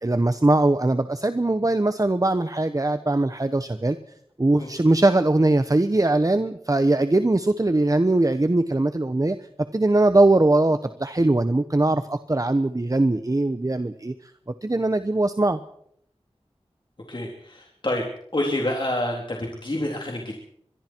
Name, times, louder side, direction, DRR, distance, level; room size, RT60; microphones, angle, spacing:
voice 1, 0.0-4.0 4.4-9.4 9.7-14.1 14.6-15.6, right 2 dB, 30° right, 10 dB, 1.1 m, -21 dB
voice 2, 17.1-18.0 18.3-20.3, left 1 dB, 45° left, -1 dB, 3.7 m, -27 dB
24.5 x 23.0 x 4.6 m, 0.70 s
wide cardioid pair, 60°, 11 cm